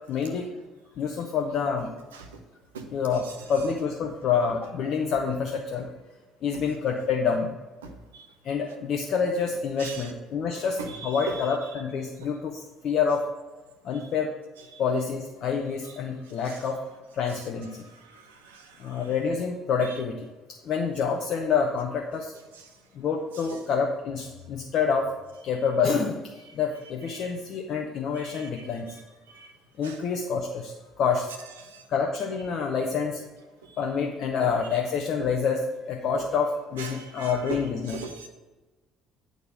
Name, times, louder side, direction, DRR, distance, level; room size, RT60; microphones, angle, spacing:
voice 1, 0.1-0.5 1.0-1.9 2.9-5.9 6.4-7.5 8.4-13.2 13.8-14.3 14.8-16.8 17.1-17.9 18.8-20.3 20.6-22.3 22.9-25.1 25.4-26.2 26.5-29.0 29.8-30.7 31.0-31.3 31.9-33.2 33.8-38.0, left 6 dB, 50° left, 1 dB, 0.7 m, -27 dB
voice 2, 10.8-11.4 14.7-14.8 18.1-18.7 27.1-27.3 28.1-28.5 29.3-29.5 29.8-30.0 31.7-31.8 36.8-37.6 37.9-38.3, right 5 dB, 75° right, 5 dB, 0.8 m, -39 dB
8.6 x 4.0 x 6.2 m, 1.2 s
figure-of-eight pair, 50°, 0 cm